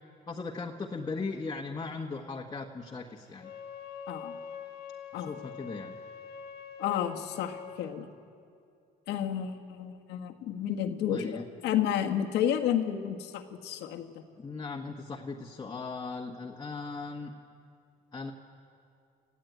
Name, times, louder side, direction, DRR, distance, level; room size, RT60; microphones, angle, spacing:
voice 1, 0.3-3.5 5.1-5.9 11.1-11.4 14.4-17.3 18.1-18.3, left 4 dB, 25° left, 0 dB, 1.3 m, -38 dB
Wind instrument woodwind instrument, 3.3-7.8, left 7 dB, 70° left, 1.6 m, -44 dB
voice 2, 4.1-4.4 5.1-5.3 6.8-8.1 9.1-14.2, left 10 dB, 85° left, 5 dB, 1.6 m, -31 dB
27.0 x 15.0 x 9.3 m, 2.5 s
cardioid pair, 110°, 17 cm